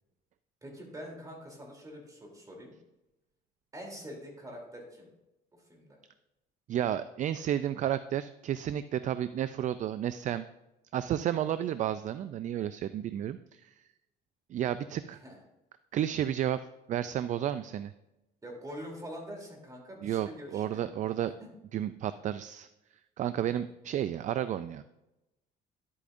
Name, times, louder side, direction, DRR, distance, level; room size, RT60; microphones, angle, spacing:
voice 1, 0.6-2.7 3.7-5.1 5.7-6.0 15.1-15.4 18.4-20.8 23.4-23.6, equal, 20° right, -1 dB, 3.2 m, -45 dB
voice 2, 6.7-10.4 10.9-13.7 14.5-15.2 15.9-16.6 16.9-17.9 20.0-21.3 21.7-22.7 23.2-24.8, right 11 dB, 45° right, 13 dB, 0.4 m, -32 dB
11.5 x 8.4 x 2.6 m, 0.94 s
cardioid pair, 110°, 17 cm